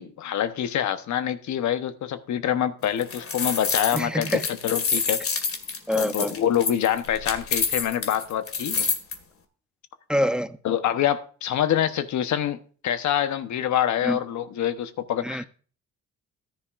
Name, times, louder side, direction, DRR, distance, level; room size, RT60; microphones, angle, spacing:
voice 1, 0.0-5.2 5.9-8.8 10.6-15.5, left 10 dB, 70° left, 1.1 m, -26 dB
sound 1, 2.8-9.1, left 5 dB, 50° left, 2.0 m, -27 dB
voice 2, 3.9-4.5 5.9-6.4 10.1-10.6 14.0-14.2 15.2-15.5, equal, 5° right, 0.6 m, -25 dB
14.5 x 10.5 x 2.5 m
cardioid pair, 90°, 30 cm